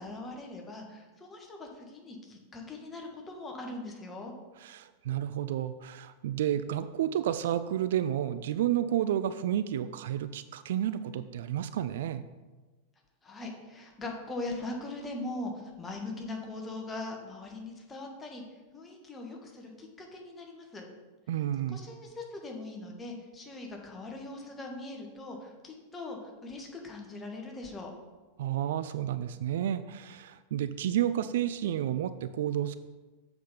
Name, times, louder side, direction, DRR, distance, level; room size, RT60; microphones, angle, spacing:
voice 1, 0.0-4.3 13.2-18.4 18.7-20.9 21.7-27.9, left 2 dB, 15° left, 1 dB, 1.6 m, -41 dB
voice 2, 4.6-12.2 21.3-21.8 28.4-32.8, right 11 dB, 55° right, 13 dB, 0.3 m, -31 dB
7.5 x 5.9 x 5.1 m, 1.2 s
figure-of-eight pair, 90°, 0 cm